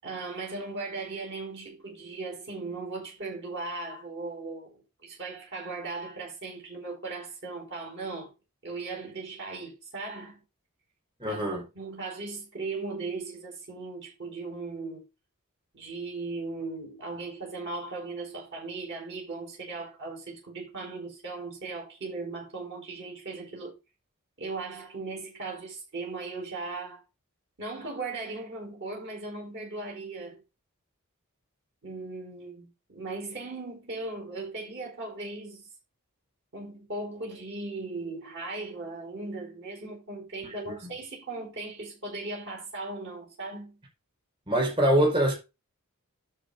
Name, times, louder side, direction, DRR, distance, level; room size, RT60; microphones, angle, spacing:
voice 1, 0.0-4.8 5.0-8.3 8.6-10.4 11.3-11.4 11.7-15.0 15.7-23.8 24.4-27.0 27.6-30.4 31.8-35.7 36.5-43.8, right 3 dB, 55° right, 4.6 m, -38 dB
voice 2, 11.2-11.6 40.8-40.9 44.5-45.3, right 1 dB, 25° right, 5.1 m, -24 dB
11.0 x 4.5 x 5.4 m
head